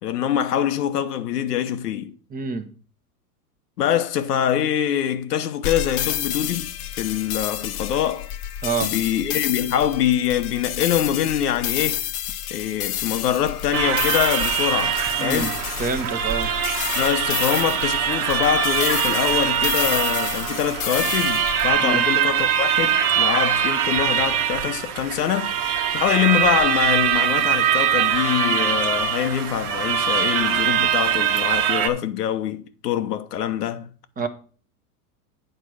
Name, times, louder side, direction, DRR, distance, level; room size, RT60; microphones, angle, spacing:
voice 1, 0.0-2.2 3.8-8.3 8.8-12.1 12.5-15.6 16.9-33.9 34.2-34.3, left 10 dB, 90° left, 1.0 m, -24 dB
voice 2, 2.3-2.7 8.6-8.9 15.2-15.5 15.8-16.5 21.8-22.0 34.2-34.3, right 4 dB, 20° right, 0.9 m, -26 dB
sound 1, 5.6-21.7, left 11 dB, 45° left, 0.9 m, -30 dB
sound 2, 13.7-31.9, right 8 dB, 65° right, 1.3 m, -22 dB
9.0 x 4.5 x 6.3 m
supercardioid pair, 125°, 46 cm